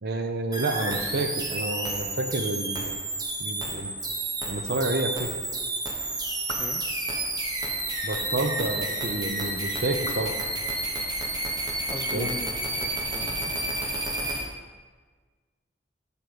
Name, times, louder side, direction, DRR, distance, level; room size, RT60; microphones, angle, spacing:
voice 1, 0.0-3.0 3.4-3.9 4.5-5.3 8.0-10.3 12.1-12.3, right 2 dB, 60° right, 5 dB, 0.6 m, -29 dB
sound 1, 0.5-14.4, right 2 dB, 20° right, 0.9 m, -30 dB
voice 2, 11.9-13.5, left 2 dB, 15° left, 1 dB, 0.3 m, -40 dB
6.7 x 5.3 x 4.6 m, 1.4 s
head